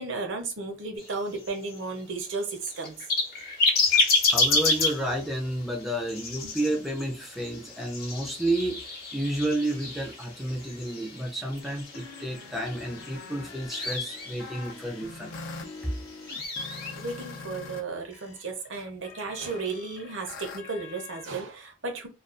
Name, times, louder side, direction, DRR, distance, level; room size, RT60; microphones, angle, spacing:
voice 1, 0.0-3.0 6.4-6.5 17.0-22.1, right 3 dB, 65° right, 0.7 m, -34 dB
sound 1, 1.0-17.4, left 3 dB, 50° left, 0.9 m, -31 dB
voice 2, 3.9-15.3, right 1 dB, ahead, 0.4 m, -31 dB
sound 2, 11.6-17.8 18.1-21.4, left 4 dB, 80° left, 0.5 m, -44 dB
2.4 x 2.3 x 2.4 m
head